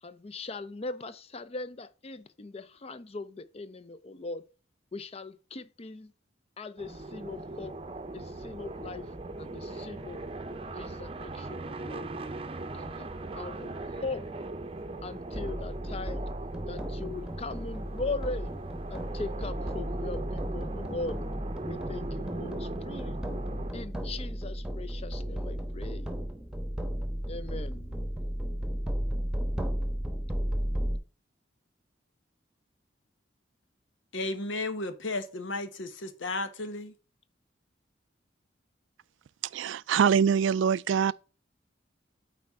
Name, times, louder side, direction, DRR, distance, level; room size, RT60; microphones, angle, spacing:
voice 1, 0.0-4.5 4.9-6.1 6.6-7.8 8.1-10.4 10.7-12.1 12.7-14.3 15.0-16.3 16.7-18.5 18.9-21.2 21.7-23.2 23.7-26.1 27.3-28.0, left 3 dB, 35° left, 0.5 m, -40 dB
sound 1, 6.8-23.7, right 2 dB, 30° right, 0.6 m, -39 dB
sound 2, 15.3-31.0, equal, 5° right, 1.0 m, -34 dB
voice 2, 34.1-36.9, left 2 dB, 90° left, 1.1 m, -34 dB
voice 3, 39.5-41.1, right 7 dB, 80° right, 0.3 m, -24 dB
8.4 x 4.4 x 3.6 m
head